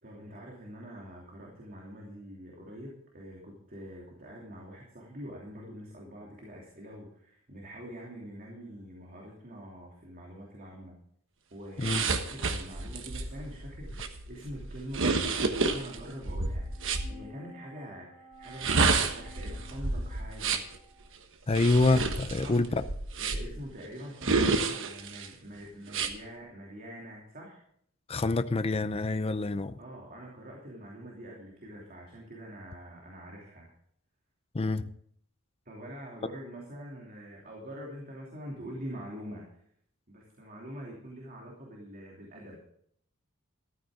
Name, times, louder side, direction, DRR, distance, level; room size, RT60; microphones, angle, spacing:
voice 1, 0.0-11.0 11.5-20.7 22.4-22.6 23.2-27.6 29.8-33.7 35.6-39.4 40.1-42.6, equal, 45° right, -2 dB, 2.9 m, -45 dB
sound 1, 11.8-17.1 18.4-20.8 21.5-23.6 24.2-25.3 25.9-26.1, right 4 dB, 65° right, 1.3 m, -29 dB
sound 2, 15.7-21.1, left 2 dB, 45° left, 4.1 m, -53 dB
voice 2, 21.5-22.8 28.1-29.8 34.5-34.9, left 2 dB, 30° left, 12 dB, 0.5 m, -26 dB
14.0 x 12.5 x 3.8 m, 0.67 s
head